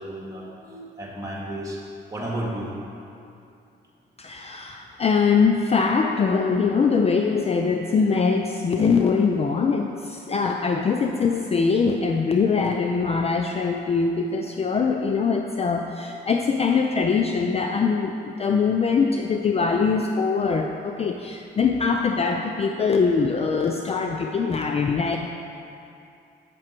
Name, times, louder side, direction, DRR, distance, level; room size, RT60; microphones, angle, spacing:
voice 1, 0.0-1.8 2.1-2.7 8.7-8.8, right 1 dB, 15° right, -3 dB, 1.9 m, -33 dB
voice 2, 4.2-25.2, left 5 dB, 30° left, 3 dB, 0.4 m, -22 dB
7.6 x 6.0 x 4.4 m, 2.6 s
cardioid pair, 90°, 20 cm